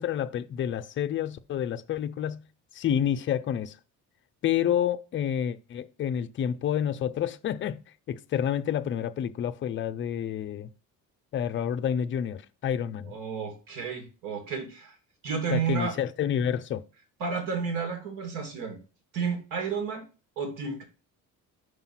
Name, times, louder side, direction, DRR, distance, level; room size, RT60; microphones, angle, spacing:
voice 1, 0.0-2.4 2.7-3.7 4.4-7.8 8.1-10.7 11.3-13.1 15.5-16.8, left 9 dB, 40° left, 0.5 m, -29 dB
voice 2, 13.0-14.9 15.2-16.0 17.2-18.8 19.1-20.1 20.4-20.8, right 6 dB, 85° right, 2.5 m, -31 dB
5.7 x 4.9 x 5.7 m
cardioid pair, 150°, 32 cm